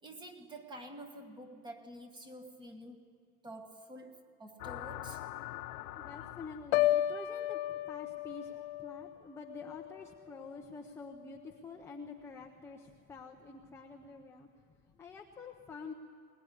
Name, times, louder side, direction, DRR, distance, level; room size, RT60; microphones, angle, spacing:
voice 1, 0.0-3.1 3.4-5.3, right 1 dB, 10° right, 7 dB, 1.4 m, -49 dB
sound 1, 4.6-7.0, left 15 dB, 85° left, 1.0 m, -43 dB
voice 2, 5.9-15.9, left 4 dB, 5° left, 1 dB, 0.6 m, -48 dB
Piano, 6.7-10.7 11.1-11.4, left 13 dB, 45° left, 0.7 m, -34 dB
22.0 x 20.0 x 9.9 m, 2.4 s
supercardioid pair, 170°, 44 cm